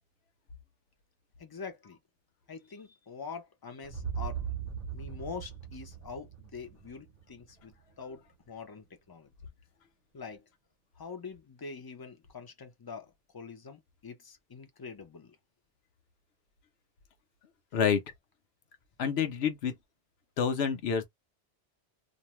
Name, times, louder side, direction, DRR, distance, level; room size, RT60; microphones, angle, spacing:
voice 1, 1.4-2.0 2.5-4.4 4.9-9.3 10.1-10.4 11.0-15.4, left 5 dB, 30° left, 0.4 m, -45 dB
sound 1, 3.8-7.9, right 7 dB, 45° right, 0.8 m, -39 dB
voice 2, 19.0-19.7 20.4-21.1, left 7 dB, 75° left, 0.9 m, -28 dB
2.6 x 2.0 x 2.9 m
omnidirectional pair, 1.1 m